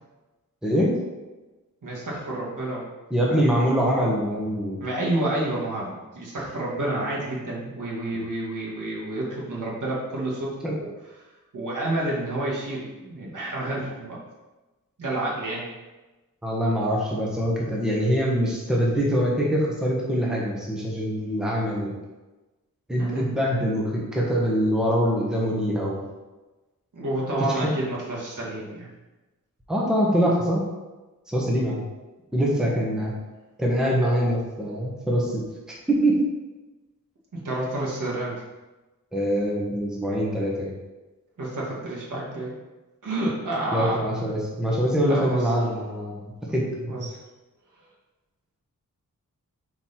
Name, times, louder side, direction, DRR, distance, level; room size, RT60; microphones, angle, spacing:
voice 1, 0.6-1.0 3.1-4.8 10.6-10.7 16.4-21.9 22.9-26.0 27.5-27.6 29.7-30.6 31.3-31.8 32.3-33.1 33.6-36.2 39.1-40.7 43.7-46.2 46.5-47.1, equal, ahead, -4 dB, 1.2 m, -24 dB
voice 2, 1.8-2.8 3.3-3.7 4.8-10.5 10.8-10.9 11.5-14.2 15.0-15.7 23.0-23.2 26.9-28.9 37.3-38.3 41.4-42.5 43.0-44.0 45.1-45.5 46.9-47.2, right 1 dB, 60° right, -5 dB, 2.0 m, -29 dB
5.5 x 4.6 x 4.3 m, 1.1 s
wide cardioid pair, 120°, 34 cm